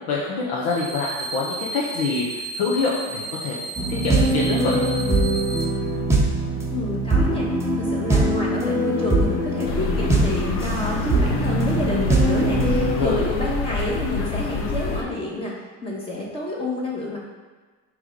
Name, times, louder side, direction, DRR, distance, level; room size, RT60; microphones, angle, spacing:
voice 1, 0.1-3.6 3.9-4.8 12.9-13.2, left 4 dB, 80° left, -5 dB, 1.2 m, -25 dB
sound 1, 0.7-5.6, right 3 dB, 25° right, 0.4 m, -33 dB
sound 2, 3.8-13.0, right 2 dB, 10° right, 0.7 m, -22 dB
voice 2, 6.7-7.5 7.8-15.5 15.8-17.2, left 1 dB, 15° left, -4 dB, 1.1 m, -28 dB
sound 3, 9.6-15.0, left 4 dB, 40° left, 0.7 m, -27 dB
7.0 x 3.4 x 5.2 m, 1.4 s
cardioid pair, 175°, 34 cm